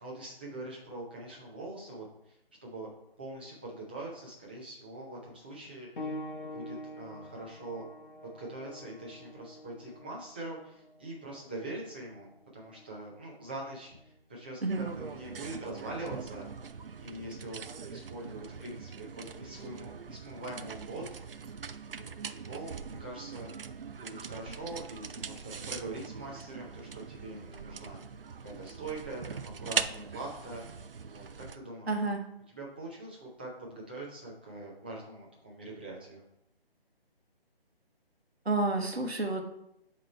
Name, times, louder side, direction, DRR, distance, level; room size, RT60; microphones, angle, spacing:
voice 1, 0.0-2.9 3.2-6.1 6.5-7.8 8.2-14.6 15.0-16.5 17.0-17.6 17.9-21.2 21.9-23.5 23.9-28.0 28.4-30.6 31.1-31.9 32.5-36.2, right 2 dB, 10° right, -5 dB, 0.6 m, -43 dB
sound 1, 6.0-16.2 17.1-17.3 18.0-18.1, left 1 dB, 55° left, 0.9 m, -47 dB
sound 2, 14.7-31.6, right 6 dB, 65° right, 0.5 m, -41 dB
voice 2, 31.9-32.2 38.4-39.4, right 2 dB, 85° right, 4 dB, 1.0 m, -29 dB
7.9 x 3.0 x 4.4 m, 0.80 s
figure-of-eight pair, 150°, 31 cm